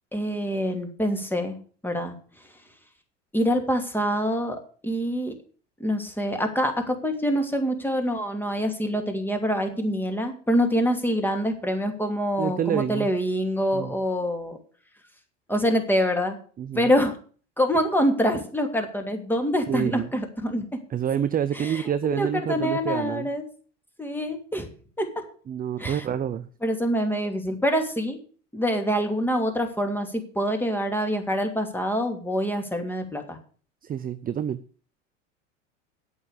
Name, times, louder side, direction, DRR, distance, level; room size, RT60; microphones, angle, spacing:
voice 1, 0.1-1.6 1.8-2.1 3.3-5.3 5.8-14.6 15.5-16.4 16.7-17.2 17.6-20.7 21.5-23.4 24.0-24.7 25.0-25.1 25.8-26.0 26.6-28.2 28.5-33.4, equal, 5° left, 5 dB, 2.8 m, -25 dB
voice 2, 12.4-13.1 13.7-13.9 16.6-16.9 19.7-20.1 20.9-23.3 25.5-26.5 33.8-34.6, right 9 dB, 25° right, 13 dB, 0.6 m, -27 dB
8.7 x 8.6 x 8.4 m, 0.42 s
hypercardioid pair, 85°, 36 cm